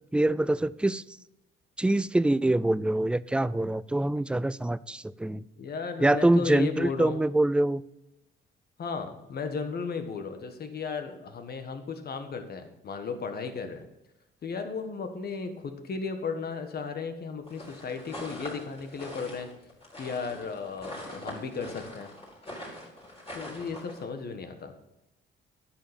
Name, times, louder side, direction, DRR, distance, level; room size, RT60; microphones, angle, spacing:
voice 1, 0.1-1.0 1.8-5.4 6.0-7.8, right 1 dB, 5° right, 18 dB, 0.3 m, -25 dB
voice 2, 5.6-7.2 8.8-13.9 14.4-19.5 20.0-22.1 23.3-24.7, left 5 dB, 50° left, 7 dB, 1.5 m, -35 dB
sound 1, 17.5-24.0, left 1 dB, 30° left, 4.7 m, -43 dB
10.5 x 7.3 x 5.3 m, 0.91 s
cardioid pair, 90°, 20 cm